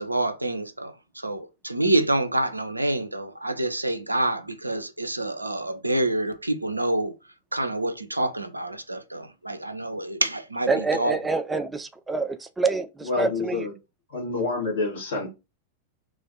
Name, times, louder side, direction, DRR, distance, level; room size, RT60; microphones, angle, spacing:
voice 1, 0.0-7.1 7.5-11.2, right 1 dB, 85° right, 0.4 m, -27 dB
voice 2, 10.7-13.7, right 4 dB, 10° right, 0.3 m, -26 dB
voice 3, 13.0-13.7 14.1-15.3, left 3 dB, 60° left, 1.6 m, -27 dB
3.1 x 2.4 x 3.8 m
figure-of-eight pair, 90°, 0 cm